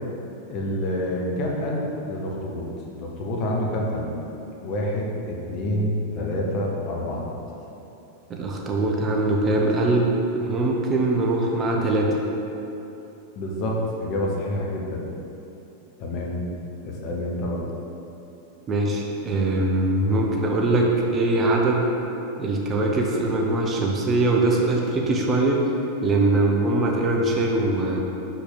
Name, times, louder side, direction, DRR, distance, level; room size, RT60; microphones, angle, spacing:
voice 1, 0.5-2.7 3.0-4.1 4.6-7.3 13.3-15.1 16.0-16.4 16.8-17.6, left 1 dB, 40° left, -2 dB, 1.1 m, -27 dB
voice 2, 8.3-10.1 10.3-12.1 18.7-21.9 22.4-25.6 26.0-28.0, right 2 dB, 25° right, -1 dB, 0.8 m, -22 dB
6.1 x 5.5 x 4.0 m, 2.9 s
figure-of-eight pair, 90°, 0 cm